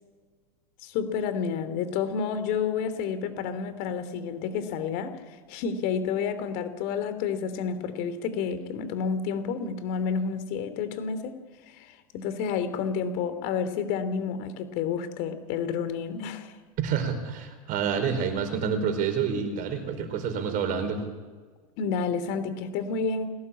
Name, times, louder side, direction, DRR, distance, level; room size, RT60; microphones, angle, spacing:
voice 1, 0.8-5.2 5.5-11.3 11.7-16.5 21.8-23.3, left 6 dB, 55° left, 11 dB, 3.1 m, -30 dB
voice 2, 16.8-21.0, right 6 dB, 45° right, 9 dB, 4.6 m, -28 dB
21.5 x 18.0 x 8.7 m, 1.5 s
hypercardioid pair, 105°, 19 cm